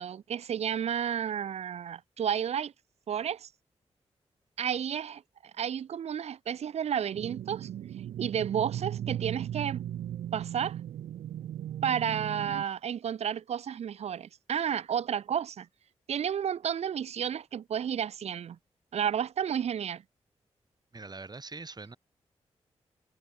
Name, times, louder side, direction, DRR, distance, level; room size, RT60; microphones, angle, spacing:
voice 1, 0.0-2.7 3.1-3.5 4.6-5.2 5.6-7.7 8.2-9.8 10.3-10.8 11.8-15.7 16.1-18.6 18.9-20.0, right 8 dB, 60° right, 0.4 m, -31 dB
sound 1, 7.1-12.6, right 11 dB, 90° right, 1.2 m, -37 dB
voice 2, 20.9-22.0, right 3 dB, 35° right, 1.9 m, -43 dB
supercardioid pair, 45°, 12 cm